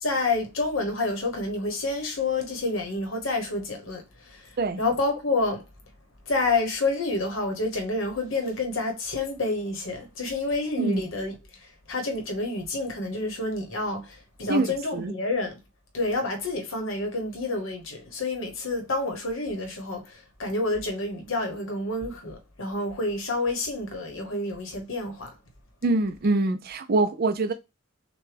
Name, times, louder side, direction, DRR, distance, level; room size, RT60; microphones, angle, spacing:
voice 1, 0.0-5.6 6.3-15.6 15.9-25.3, left 2 dB, 70° left, 1.1 m, -29 dB
voice 2, 10.8-11.1 14.5-14.7 14.9-15.1 25.8-27.5, right 2 dB, 50° right, 0.5 m, -24 dB
6.2 x 2.2 x 3.3 m
head